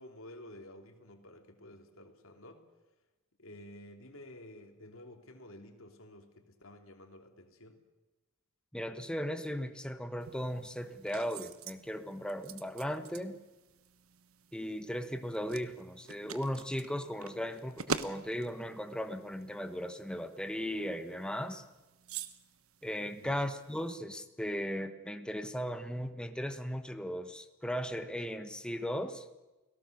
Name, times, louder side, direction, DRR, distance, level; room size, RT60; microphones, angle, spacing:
voice 1, 0.0-2.7 3.4-7.8 23.2-23.5, left 1 dB, 75° left, 5 dB, 3.0 m, -52 dB
voice 2, 8.7-13.4 14.5-21.6 22.8-29.2, equal, 5° left, 8 dB, 1.3 m, -37 dB
sound 1, 10.2-24.0, right 5 dB, 90° right, 1.2 m, -46 dB
29.5 x 18.0 x 6.7 m, 1.1 s
head